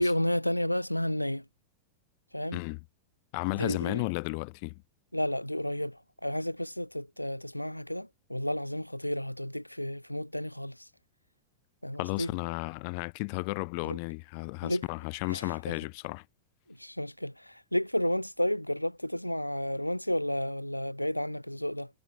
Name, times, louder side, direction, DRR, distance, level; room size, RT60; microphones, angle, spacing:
voice 1, 0.0-1.4 2.3-2.6 3.6-4.0 5.1-10.7 11.8-12.3 13.8-14.0 14.6-14.8 15.3-15.4 16.8-21.9, left 1 dB, 90° left, 0.6 m, -31 dB
voice 2, 2.5-2.8 3.3-4.8 12.0-16.2, left 35 dB, 45° left, 0.9 m, -34 dB
figure-of-eight pair, 90°, 0 cm